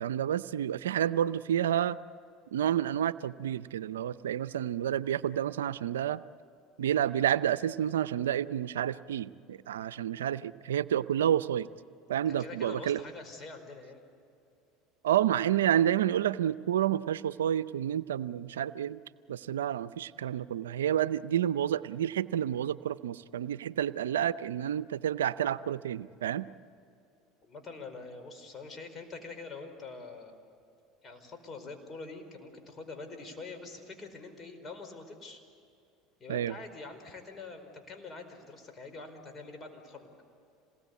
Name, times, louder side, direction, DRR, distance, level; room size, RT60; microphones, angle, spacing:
voice 1, 0.0-2.0 2.5-6.2 6.8-11.7 12.1-13.0 15.0-19.0 19.3-26.5 36.3-36.6, right 10 dB, 90° right, 15 dB, 0.5 m, -29 dB
voice 2, 12.3-14.0 27.4-30.4 31.0-35.4 36.2-40.1, left 3 dB, 35° left, 6 dB, 4.9 m, -45 dB
27.5 x 19.5 x 8.4 m, 2.5 s
hypercardioid pair, 85°, 0 cm